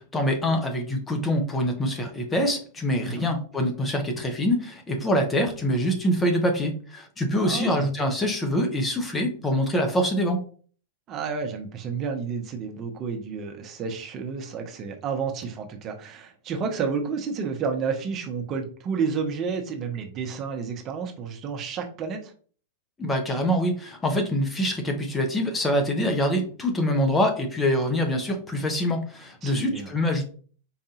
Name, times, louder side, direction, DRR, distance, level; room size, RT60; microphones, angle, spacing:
voice 1, 0.0-10.4 23.0-30.2, equal, 15° left, 4 dB, 0.7 m, -25 dB
voice 2, 7.4-7.9 11.1-22.3 29.4-29.9, right 5 dB, 35° right, 3 dB, 0.8 m, -31 dB
4.9 x 2.6 x 2.4 m, 0.42 s
figure-of-eight pair, 95°, 0 cm